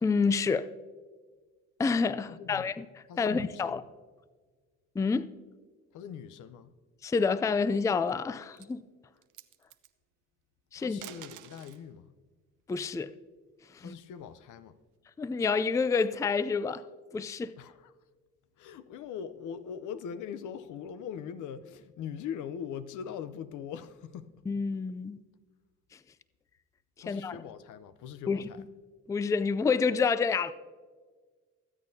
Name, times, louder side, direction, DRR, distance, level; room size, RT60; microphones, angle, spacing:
voice 1, 0.0-0.7 1.8-2.9 3.2-3.8 5.0-5.3 7.0-8.8 10.7-11.0 12.7-13.1 13.8-13.9 15.2-16.8 17.1-17.5 24.5-25.2 27.1-27.4 28.3-28.4 29.1-30.5, left 5 dB, 10° left, 0.3 m, -28 dB
voice 2, 2.3-2.7 3.1-3.9 5.9-6.7 10.8-12.1 13.8-14.8 17.6-17.9 18.6-24.4 27.0-28.6, left 8 dB, 80° left, 0.7 m, -41 dB
sound 1, 7.6-8.1 8.5-8.8 9.2-9.9 10.8-11.9 13.4-14.5, right 12 dB, 85° right, 0.7 m, -50 dB
23.5 x 8.7 x 2.7 m
cardioid pair, 90°, 30 cm